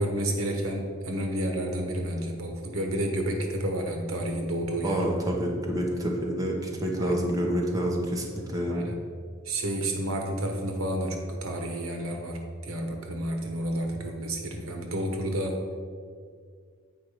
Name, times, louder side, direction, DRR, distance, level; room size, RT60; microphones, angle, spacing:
voice 1, 0.0-5.1 7.0-7.3 8.7-9.0 9.4-15.6, right 1 dB, 85° right, 3 dB, 1.1 m, -30 dB
voice 2, 4.8-8.8, equal, 15° right, -1 dB, 1.0 m, -28 dB
8.3 x 4.7 x 4.9 m, 2.1 s
head